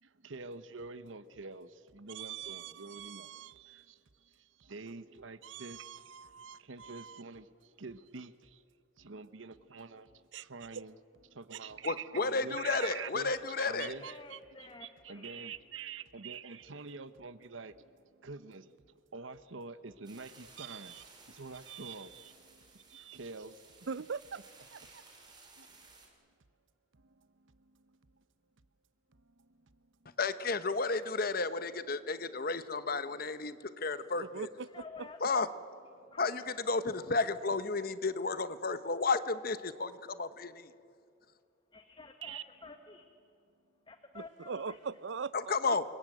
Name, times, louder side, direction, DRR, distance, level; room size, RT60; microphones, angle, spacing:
voice 1, 0.0-8.6 9.0-11.0 11.3-21.0 21.3-23.9 24.8-24.9 25.6-25.7 26.9-28.2 29.2-29.7 30.1-30.2 33.5-33.9 42.2-42.4, right 4 dB, 85° right, 1.0 m, -47 dB
voice 2, 2.1-3.5 5.4-7.2 10.3-10.5 10.7-10.8 11.5-11.6 12.7-12.9 13.3-14.4 20.6-21.0 21.7-22.0 23.9-24.4 24.7-25.0 34.2-35.1 44.1-45.8, right 6 dB, 70° right, 0.6 m, -43 dB
voice 3, 11.8-13.9 30.2-34.5 35.2-35.5 36.2-40.7 45.3-45.8, left 3 dB, 50° left, 1.0 m, -32 dB
voice 4, 14.0-15.5 34.7-35.2 36.1-36.8 37.2-37.3 41.7-43.1 43.9-44.8, left 3 dB, 25° left, 1.3 m, -52 dB
sound 1, 20.0-26.1, right 3 dB, 25° right, 5.1 m, -58 dB
28.5 x 22.5 x 9.0 m
head